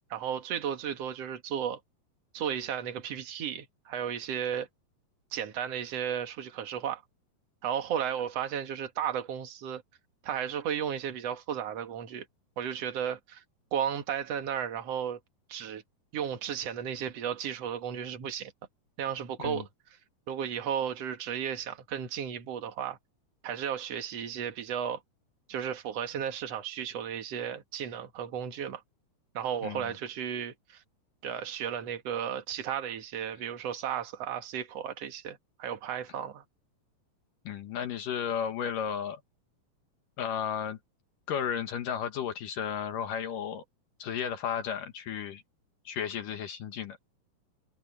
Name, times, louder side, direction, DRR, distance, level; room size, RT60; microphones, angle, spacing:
voice 1, 0.1-1.8 2.3-4.7 5.3-7.0 7.6-9.8 10.2-12.3 12.6-13.4 13.7-15.2 15.5-15.8 16.1-18.5 19.0-19.7 20.3-23.0 23.4-25.0 25.5-28.8 29.3-30.8 31.2-36.4, right 8 dB, 50° right, 2.5 m, -34 dB
voice 2, 37.5-39.2 40.2-40.8 41.3-43.6 44.0-45.4 45.9-47.0, left 8 dB, 70° left, 2.9 m, -33 dB
omnidirectional pair, 4.0 m